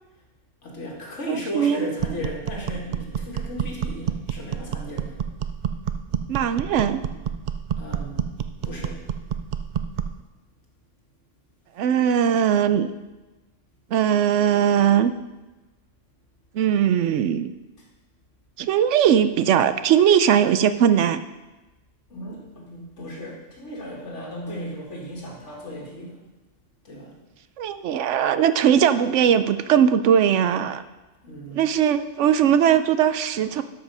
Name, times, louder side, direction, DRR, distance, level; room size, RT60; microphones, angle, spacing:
voice 1, 0.6-5.2 7.8-8.2 8.6-9.0 22.1-26.2 26.8-27.1 31.2-31.6, equal, 80° left, -1 dB, 2.4 m, -35 dB
voice 2, 1.3-1.9 6.3-7.0 11.8-12.9 13.9-15.1 16.5-17.5 18.6-21.2 27.6-30.8 31.5-33.6, right 9 dB, 85° right, 12 dB, 0.9 m, -19 dB
sound 1, 2.0-10.2, right 8 dB, 60° right, 0.5 m, -29 dB
12.0 x 5.7 x 5.5 m, 1.1 s
omnidirectional pair, 1.2 m